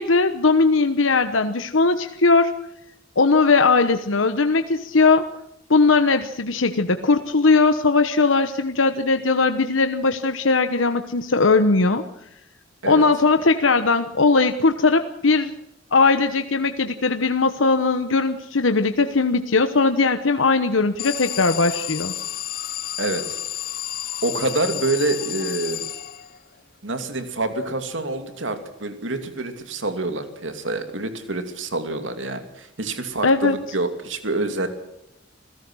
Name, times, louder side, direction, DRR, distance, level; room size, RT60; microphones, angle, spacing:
voice 1, 0.0-2.5 3.2-5.3 5.7-12.0 12.9-15.5 15.9-22.1 33.2-33.6, left 3 dB, 90° left, 8 dB, 1.1 m, -19 dB
Alarm, 21.0-26.5, left 12 dB, 50° left, 0.7 m, -31 dB
voice 2, 23.0-23.4 24.2-25.8 26.8-34.7, right 2 dB, 75° right, 7 dB, 2.7 m, -27 dB
27.0 x 17.0 x 6.3 m, 0.82 s
head